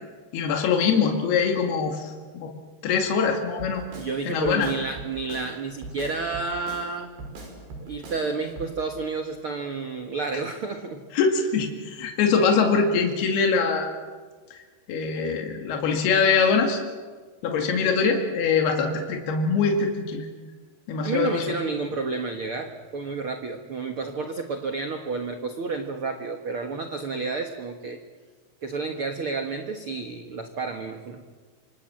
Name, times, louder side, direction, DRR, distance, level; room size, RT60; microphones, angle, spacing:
voice 1, 0.3-2.1 2.4-2.5 2.8-3.8 4.2-4.7 11.1-13.9 14.5-14.6 14.9-16.8 17.4-20.3 20.9-21.6, left 5 dB, 70° left, 3 dB, 4.2 m, -23 dB
Drum kit, 3.6-4.1 4.4-5.5 5.8-6.9 7.2-8.2 8.6-8.7, right 2 dB, 85° right, 7.5 m, -39 dB
voice 2, 3.9-7.1 7.8-11.0 21.0-28.0 28.6-31.2, right 4 dB, 55° right, 5 dB, 1.5 m, -30 dB
27.0 x 26.5 x 7.7 m, 1.5 s
omnidirectional pair, 4.7 m